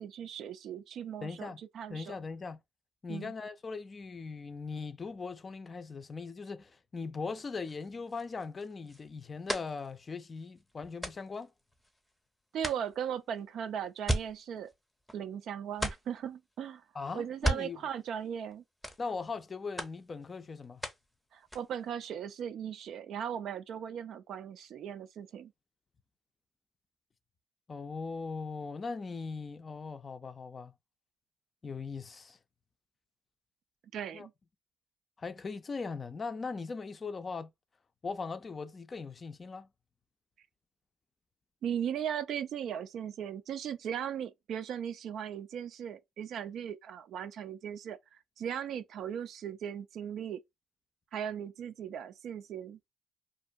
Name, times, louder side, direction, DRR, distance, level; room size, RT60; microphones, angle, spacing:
voice 1, 0.0-2.1 3.1-3.3 12.5-14.7 15.1-16.8 17.1-18.6 21.3-25.5 33.9-34.3 41.6-48.0 48.4-50.4 51.1-52.8, right 9 dB, 70° right, 0.3 m, -38 dB
voice 2, 1.2-1.6 1.9-2.6 3.0-11.5 16.9-17.8 19.0-20.8 27.7-30.7 31.6-32.4 34.1-34.3 35.2-37.5 38.0-39.7, left 4 dB, 35° left, 0.4 m, -39 dB
sound 1, 7.3-12.2 12.6-15.4 15.7-16.3 17.2-18.6 18.8-19.5 19.8-21.1 21.4-21.9, right 1 dB, ahead, 0.7 m, -38 dB
2.5 x 2.2 x 2.6 m
cardioid pair, 85°, 0 cm